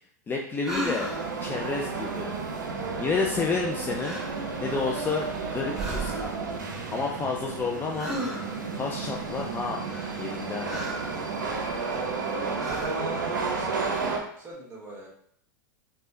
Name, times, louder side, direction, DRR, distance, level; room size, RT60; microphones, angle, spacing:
voice 1, 0.3-1.1 1.4-4.2 4.6-6.2 6.9-8.1 8.7-9.8 10.2-10.7, left 4 dB, 20° left, -1 dB, 0.3 m, -30 dB
sound 1, 0.6-1.4 3.5-3.7 4.0-4.4 4.8-5.4 5.7-6.5 8.0-8.7 9.9-11.2 11.7-12.3 12.6-13.1 13.7-14.3, right 1 dB, 5° right, 0.7 m, -36 dB
sound 2, 1.0-14.2, right 4 dB, 80° right, 0.5 m, -32 dB
voice 2, 12.6-13.8 14.4-15.1, right 3 dB, 20° right, -4 dB, 1.4 m, -41 dB
3.3 x 2.2 x 2.6 m, 0.65 s
hypercardioid pair, 95°, 10 cm